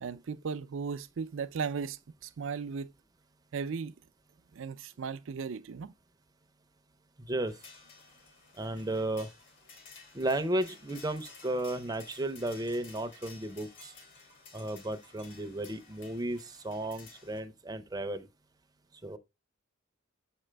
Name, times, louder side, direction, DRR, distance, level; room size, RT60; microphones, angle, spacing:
voice 1, 0.0-2.9 3.5-3.9 4.5-5.9, right 5 dB, 65° right, 0.4 m, -36 dB
voice 2, 7.2-7.6 8.6-9.3 10.1-13.9 14.5-18.3 19.0-19.2, right 1 dB, 20° right, 0.6 m, -34 dB
sound 1, 7.5-17.4, left 4 dB, 60° left, 2.4 m, -54 dB
7.0 x 4.9 x 3.3 m
head